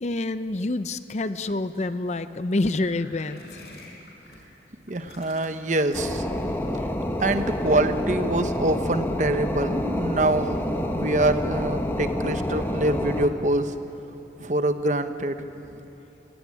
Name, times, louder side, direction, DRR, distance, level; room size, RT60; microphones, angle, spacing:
voice 1, 0.0-3.6, left 2 dB, 40° left, 12 dB, 0.6 m, -27 dB
Gassy Fart, 2.8-4.4 4.9-6.0 7.3-7.7, left 2 dB, 60° left, 4.8 m, -47 dB
voice 2, 4.9-6.3 7.2-13.7 14.4-15.4, right 2 dB, 45° right, 9 dB, 1.0 m, -25 dB
sound 1, 5.9-13.3, left 1 dB, 15° left, 1.4 m, -28 dB
22.5 x 17.5 x 9.9 m, 3.0 s
head